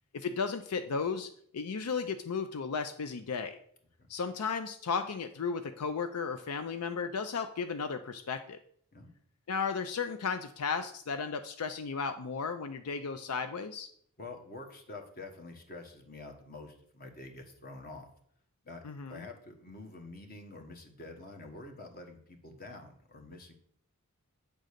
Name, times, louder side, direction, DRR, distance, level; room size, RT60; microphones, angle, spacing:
voice 1, 0.1-3.6 4.1-8.6 9.5-13.9 18.8-19.3, left 5 dB, 80° left, 9 dB, 0.5 m, -34 dB
voice 2, 14.2-18.1 18.6-23.5, left 2 dB, 40° left, 4 dB, 1.4 m, -47 dB
8.5 x 3.8 x 6.6 m, 0.64 s
head